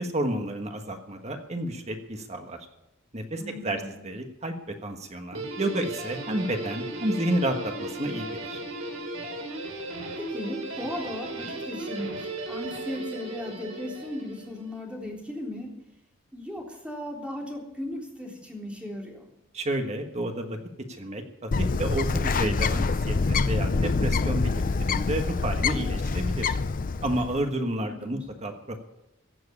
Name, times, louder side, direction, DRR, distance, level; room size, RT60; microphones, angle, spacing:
voice 1, 0.0-2.6 3.1-8.6 19.5-20.6 20.9-26.6 27.0-28.8, right 1 dB, 35° right, 5 dB, 1.4 m, -31 dB
voice 2, 3.4-3.9 10.2-15.7 16.3-19.3 27.8-28.2, left 1 dB, 5° right, -2 dB, 3.7 m, -37 dB
Guitar, 5.3-14.7, right 2 dB, 90° right, 4.0 m, -36 dB
Bird, 21.5-27.4, left 4 dB, 40° left, 0.5 m, -26 dB
15.5 x 7.8 x 9.7 m, 0.85 s
head